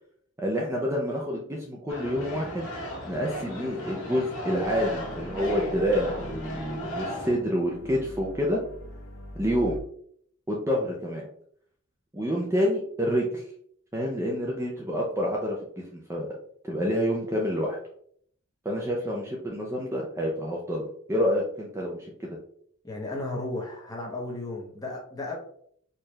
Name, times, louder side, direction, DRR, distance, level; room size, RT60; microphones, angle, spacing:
voice 1, 0.4-2.7 3.1-8.6 9.4-9.8 10.5-11.3 12.1-13.4 13.9-15.6 15.9-16.3 16.7-17.8 18.6-22.1, equal, 10° right, -2 dB, 0.5 m, -28 dB
sound 1, 1.9-7.3, equal, 80° left, 1.4 m, -36 dB
sound 2, 4.6-9.8, left 1 dB, 65° left, 0.8 m, -43 dB
voice 2, 22.8-25.3, left 2 dB, 15° left, -2 dB, 0.9 m, -34 dB
4.5 x 2.4 x 3.2 m, 0.63 s
head